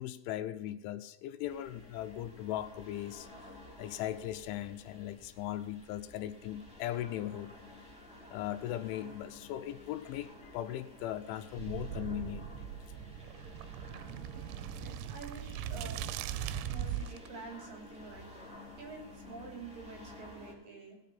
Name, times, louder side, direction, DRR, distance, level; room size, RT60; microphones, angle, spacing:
voice 1, 0.0-3.3 3.8-7.5 8.3-12.5, left 12 dB, 85° left, 11 dB, 3.1 m, -38 dB
sound 1, 1.4-20.5, left 2 dB, ahead, 2.1 m, -53 dB
sound 2, 11.6-17.3, right 10 dB, 90° right, 3.1 m, -40 dB
voice 2, 14.8-16.1 16.7-18.5 18.8-21.0, right 4 dB, 50° right, 0 dB, 4.3 m, -48 dB
18.0 x 7.4 x 5.8 m, 0.95 s
omnidirectional pair, 5.5 m